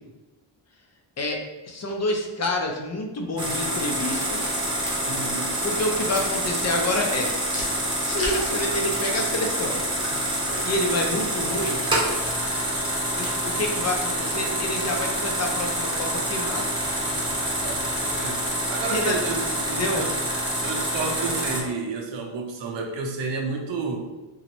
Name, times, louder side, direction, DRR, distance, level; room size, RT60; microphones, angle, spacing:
voice 1, 1.2-4.4 5.6-7.3 7.8-9.8 10.6-11.8 13.2-16.7 18.9-19.2 19.7-20.1, left 1 dB, 35° left, 2 dB, 0.5 m, -28 dB
sound 1, 3.4-21.6, right 1 dB, 10° right, 0.7 m, -27 dB
sound 2, 4.1-14.2, equal, 15° left, 1.1 m, -43 dB
sound 3, 4.2-18.5, left 1 dB, 70° left, 0.9 m, -43 dB
voice 2, 5.0-5.6 17.6-18.4 18.7-19.4 20.0-20.1 20.6-24.0, right 4 dB, 65° right, 2 dB, 0.7 m, -30 dB
3.7 x 2.1 x 2.9 m, 1.1 s
wide cardioid pair, 135°, 47 cm